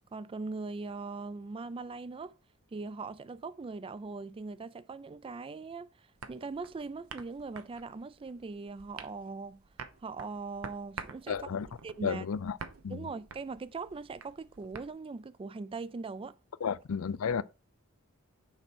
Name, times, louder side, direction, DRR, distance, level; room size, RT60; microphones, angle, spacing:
voice 1, 0.1-2.4 2.7-9.6 10.0-12.3 12.9-16.4 16.6-16.7, right 4 dB, 25° right, 0.3 m, -41 dB
sound 1, 6.2-14.9, right 5 dB, 80° right, 0.9 m, -49 dB
voice 2, 11.3-11.7 12.0-12.6 12.8-13.0 16.6-17.4, left 6 dB, 75° left, 0.4 m, -32 dB
6.5 x 4.3 x 6.2 m
head